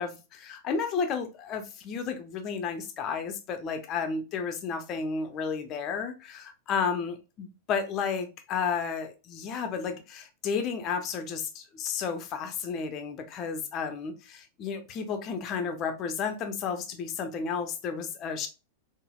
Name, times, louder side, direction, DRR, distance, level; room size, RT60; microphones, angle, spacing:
voice 1, 0.0-18.5, left 6 dB, 40° left, 0.6 m, -32 dB
3.9 x 2.0 x 2.3 m
hypercardioid pair, 100°, 0 cm